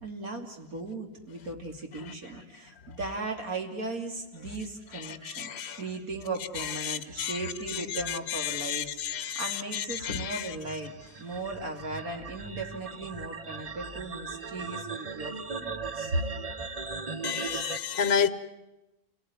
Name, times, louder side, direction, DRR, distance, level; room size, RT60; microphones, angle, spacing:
voice 1, 0.0-16.2, right 2 dB, 70° right, 3.2 m, -37 dB
voice 2, 4.9-5.8 6.5-10.5 17.2-18.3, left 8 dB, 45° left, 1.2 m, -32 dB
sound 1, 8.5-17.8, right 4 dB, 30° right, 1.0 m, -39 dB
29.0 x 17.5 x 9.6 m
omnidirectional pair, 1.6 m